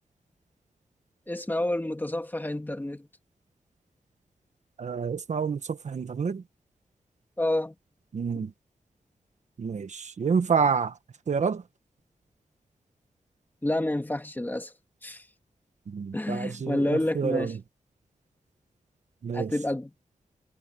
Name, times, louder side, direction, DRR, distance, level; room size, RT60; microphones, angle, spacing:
voice 1, 1.3-3.1 7.4-7.7 8.4-8.5 13.6-14.7 15.0-15.2 16.1-17.5 19.3-19.9, left 1 dB, 15° left, 2.3 m, -29 dB
voice 2, 4.8-6.4 8.1-8.5 9.6-10.9 11.3-11.6 15.9-17.6 19.2-19.5, right 6 dB, 65° right, 1.3 m, -28 dB
wide cardioid pair, 95°, 13 cm